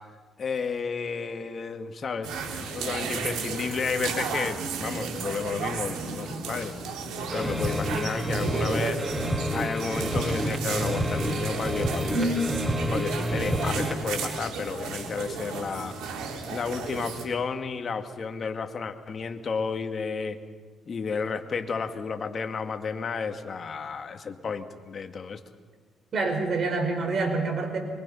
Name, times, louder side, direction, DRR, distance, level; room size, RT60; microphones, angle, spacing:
voice 1, 0.4-6.8 7.3-9.0 9.5-12.3 12.9-16.0 16.5-20.4 20.9-25.4, left 5 dB, 45° left, 6 dB, 2.0 m, -32 dB
sound 1, 2.2-17.2, right 5 dB, 85° right, 3.5 m, -34 dB
sound 2, 7.3-14.0, equal, 10° right, 1.9 m, -29 dB
voice 2, 12.1-12.5 26.1-27.8, right 2 dB, 55° right, 4 dB, 5.3 m, -26 dB
24.5 x 24.0 x 5.7 m, 1.5 s
cardioid pair, 90°, 0 cm